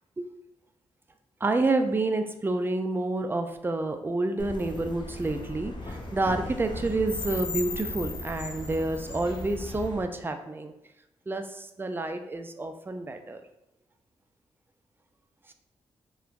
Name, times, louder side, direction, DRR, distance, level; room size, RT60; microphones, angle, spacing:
voice 1, 1.4-10.7 11.3-13.4, right 2 dB, 20° right, 6 dB, 0.3 m, -29 dB
sound 1, 4.4-10.0, left 2 dB, 40° left, 0.6 m, -36 dB
3.0 x 2.1 x 2.4 m, 0.88 s
supercardioid pair, 55°, 12 cm